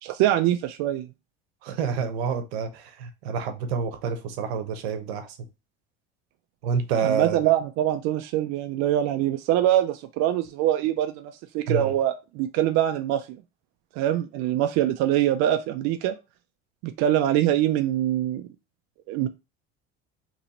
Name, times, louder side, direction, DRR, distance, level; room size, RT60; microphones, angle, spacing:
voice 1, 0.0-1.1 7.0-13.2 14.0-16.1 16.8-18.5 19.1-19.3, right 12 dB, 60° right, 0.5 m, -24 dB
voice 2, 1.6-5.4 6.6-7.4 11.7-11.9, right 6 dB, 90° right, 0.9 m, -28 dB
3.0 x 2.7 x 4.1 m
supercardioid pair, 110°, 31 cm